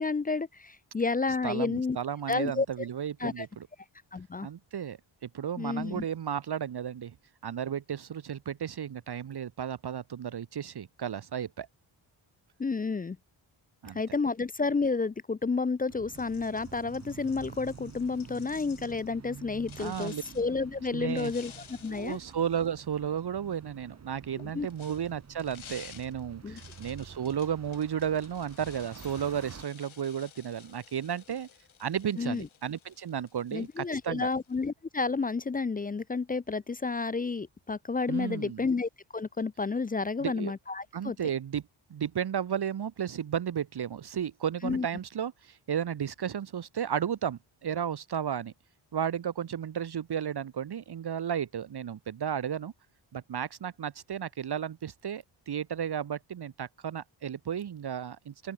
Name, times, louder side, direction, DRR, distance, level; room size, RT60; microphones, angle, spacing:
voice 1, 0.0-2.0 2.3-2.7 3.2-3.5 4.1-4.5 5.6-6.0 12.6-13.2 13.9-22.2 24.4-24.7 26.4-26.6 32.2-32.5 33.5-41.2 44.6-44.9, left 4 dB, 20° left, 0.3 m, -31 dB
voice 2, 1.4-3.7 4.4-7.1 7.4-11.7 13.8-14.0 19.8-20.2 20.9-21.3 21.9-31.5 31.8-34.3 38.1-38.6 40.2-40.5 40.9-41.6 41.9-48.5 48.9-52.7 53.1-58.5, right 8 dB, 55° right, 1.4 m, -33 dB
sound 1, 15.9-29.6, right 6 dB, 35° right, 1.7 m, -49 dB
sound 2, 16.1-19.1 19.7-20.5 21.1-23.2 24.3-34.6, left 9 dB, 90° left, 5.1 m, -54 dB
open air
wide cardioid pair, 175°, 47 cm